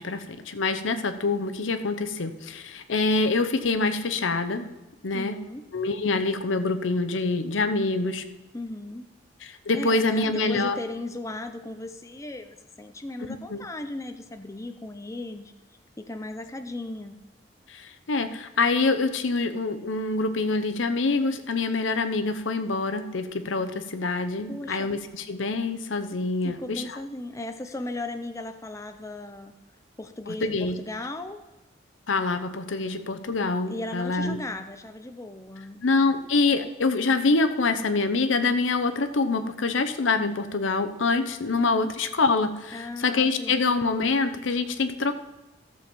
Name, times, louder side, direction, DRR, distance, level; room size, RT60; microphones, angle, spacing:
voice 1, 0.0-4.7 5.0-5.4 5.7-8.2 9.4-10.8 13.5-13.6 17.7-27.0 30.3-30.8 32.1-34.4 35.8-45.2, left 3 dB, 90° left, 10 dB, 0.8 m, -25 dB
voice 2, 5.1-5.6 8.5-9.0 9.7-15.5 16.0-17.2 24.5-24.9 26.4-29.6 30.0-31.4 33.7-35.8 41.8-41.9 42.7-43.6, left 2 dB, 15° left, 7 dB, 0.6 m, -36 dB
14.5 x 7.1 x 4.4 m, 1.1 s
head